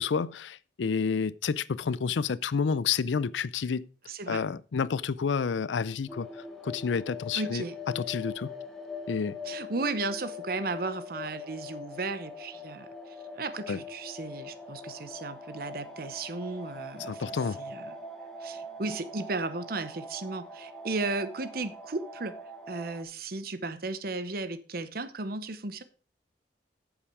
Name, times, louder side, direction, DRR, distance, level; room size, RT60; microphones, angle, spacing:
voice 1, 0.0-3.9 4.3-6.3 6.6-7.6 8.0-8.5 9.1-9.4 13.7-13.8 17.1-17.6, left 5 dB, 85° left, 0.5 m, -29 dB
voice 2, 4.0-4.4 7.3-7.8 9.4-18.0 18.4-22.4 22.7-25.8, right 3 dB, 55° right, 0.9 m, -35 dB
sound 1, 6.1-23.0, left 3 dB, ahead, 1.7 m, -42 dB
8.6 x 7.3 x 4.8 m
head